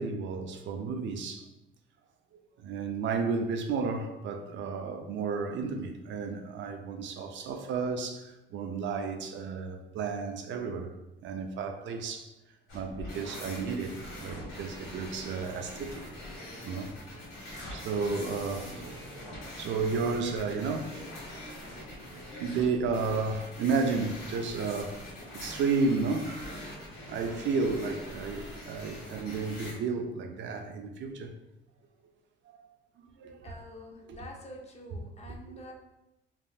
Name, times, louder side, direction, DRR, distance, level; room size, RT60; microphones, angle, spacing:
voice 1, 0.0-1.5 2.6-10.9 11.2-12.3 12.7-16.1 16.6-16.9 17.7-19.3 19.5-21.1 22.0-25.0 25.3-26.4 27.1-31.3 32.5-32.6 33.2-33.5 34.1-34.2, right 4 dB, 70° right, 0.4 m, -32 dB
sound 1, 12.7-29.7, left 1 dB, 85° left, 1.5 m, -43 dB
voice 2, 33.4-35.7, left 1 dB, 35° left, 0.6 m, -47 dB
3.3 x 2.5 x 2.4 m
cardioid pair, 90°, 20 cm